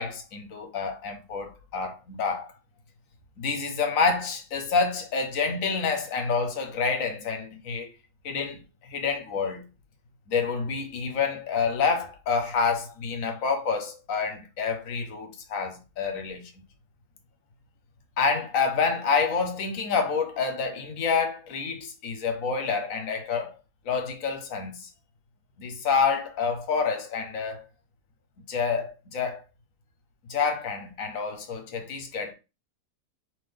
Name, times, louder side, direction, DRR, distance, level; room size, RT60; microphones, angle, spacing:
voice 1, 0.0-2.5 3.4-7.9 8.2-9.6 10.3-16.5 18.2-23.6 23.8-24.9 25.6-27.7 28.5-29.4 30.3-32.3, left 5 dB, 65° left, 1.2 m, -28 dB
3.7 x 2.9 x 3.4 m
omnidirectional pair, 1.6 m